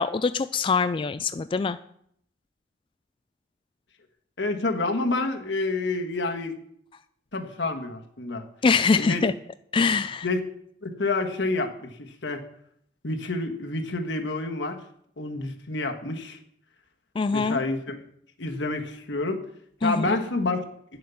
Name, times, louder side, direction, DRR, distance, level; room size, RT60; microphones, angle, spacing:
voice 1, 0.0-1.8 8.6-9.3 9.7-10.3 17.2-17.6 19.8-20.2, left 4 dB, 30° left, 13 dB, 0.3 m, -23 dB
voice 2, 4.4-6.5 7.3-8.4 9.0-9.2 10.2-10.4 10.8-12.4 13.0-14.8 15.2-16.4 17.3-18.0 18.4-19.4 19.8-20.6, left 2 dB, 80° left, 4 dB, 1.5 m, -28 dB
10.5 x 7.7 x 7.0 m, 0.68 s
head